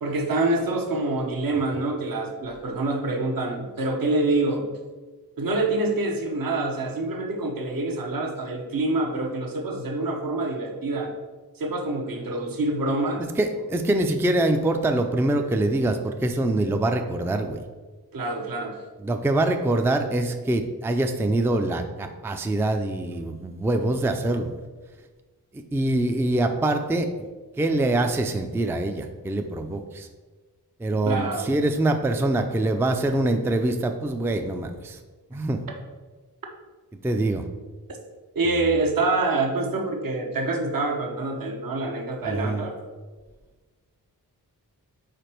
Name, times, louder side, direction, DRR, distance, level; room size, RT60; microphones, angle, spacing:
voice 1, 0.0-4.7 5.4-11.1 11.6-13.3 18.1-18.8 31.0-31.5 38.3-42.7, right 2 dB, 60° right, 2 dB, 0.9 m, -26 dB
voice 2, 13.4-17.6 19.0-24.5 25.5-27.1 27.6-30.1 30.8-35.0 35.3-35.6 37.0-37.4 42.2-42.6, right 2 dB, 5° right, 6 dB, 0.4 m, -24 dB
5.1 x 4.2 x 4.4 m, 1.3 s
wide cardioid pair, 75°, 39 cm